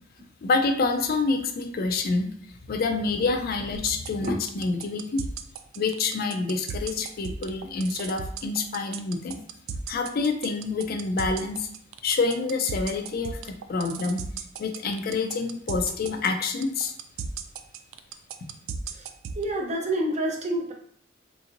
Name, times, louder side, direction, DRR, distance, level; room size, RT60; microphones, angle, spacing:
voice 1, 0.4-2.3 2.7-5.2 5.8-9.4 9.9-11.7 12.0-14.2 14.6-16.9, left 3 dB, 50° left, 6 dB, 0.4 m, -27 dB
sound 1, 3.7-19.4, right 7 dB, 80° right, 0.3 m, -35 dB
voice 2, 19.3-20.7, right 1 dB, 35° right, 0 dB, 0.6 m, -28 dB
3.4 x 2.9 x 2.5 m, 0.62 s
head